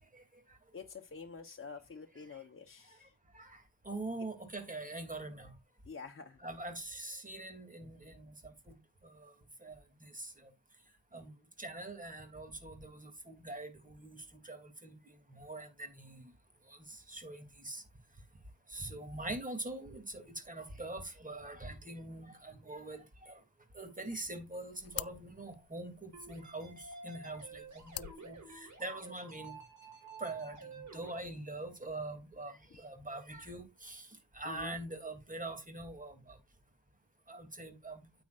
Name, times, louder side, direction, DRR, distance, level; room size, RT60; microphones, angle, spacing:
voice 1, 0.7-3.1 5.9-6.4 34.4-34.8, left 5 dB, 40° left, 1.2 m, -48 dB
voice 2, 3.3-5.5 6.4-8.8 9.0-9.3 9.6-10.5 11.1-16.3 16.7-17.8 18.7-23.4 23.7-29.6 30.2-36.4 37.3-38.1, right 2 dB, 25° right, 3.0 m, -44 dB
sound 1, 24.2-29.2, left 13 dB, 90° left, 0.5 m, -49 dB
sound 2, 26.1-31.2, right 3 dB, 60° right, 4.9 m, -51 dB
9.3 x 9.1 x 2.6 m
wide cardioid pair, 95°, 33 cm